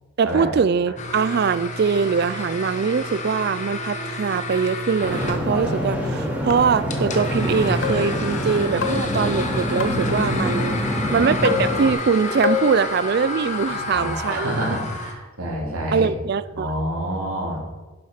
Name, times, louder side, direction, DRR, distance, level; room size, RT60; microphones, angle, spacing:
voice 1, 0.2-10.8 11.1-14.7 15.9-16.7, right 6 dB, 45° right, 16 dB, 0.3 m, -22 dB
sound 1, 1.0-15.1, left 2 dB, 35° left, 1.2 m, -31 dB
sound 2, 5.0-11.9, equal, 5° right, 2.3 m, -25 dB
sound 3, 5.6-6.1 6.5-7.1 7.8-8.3 8.8-10.2 11.4-12.1 12.4-12.8, left 8 dB, 60° left, 0.8 m, -28 dB
voice 2, 10.7-11.1 13.7-16.1 16.5-17.6, right 1 dB, 80° right, -2 dB, 3.4 m, -28 dB
11.0 x 7.7 x 5.7 m, 1.2 s
head